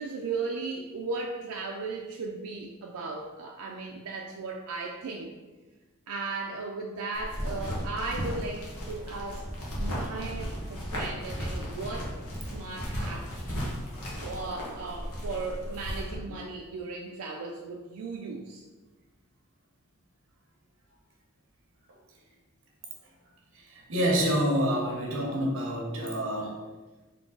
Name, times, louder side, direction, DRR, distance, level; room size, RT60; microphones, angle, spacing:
voice 1, 0.0-5.3 6.1-9.4 9.7-12.1 12.5-13.3 14.2-18.6, right 3 dB, 90° right, 0 dB, 0.4 m, -36 dB
sound 1, 7.1-16.1, equal, 85° left, 1.1 m, -35 dB
voice 2, 23.5-26.6, equal, 60° right, 0 dB, 0.9 m, -28 dB
3.7 x 2.9 x 3.8 m, 1.2 s
head